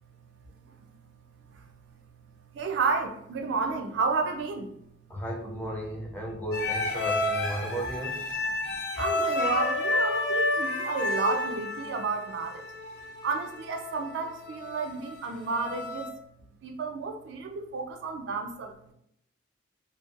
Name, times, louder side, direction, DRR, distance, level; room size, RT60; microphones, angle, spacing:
voice 1, 0.7-1.0 1.5-2.0 2.5-4.7 8.6-12.7 13.2-16.1 16.4-18.9, right 4 dB, 60° right, 5 dB, 0.3 m, -32 dB
voice 2, 5.1-8.2, right 1 dB, 10° left, -1 dB, 0.4 m, -34 dB
sound 1, 6.5-16.1, left 2 dB, 55° left, 0.6 m, -30 dB
2.6 x 2.1 x 2.4 m, 0.74 s
head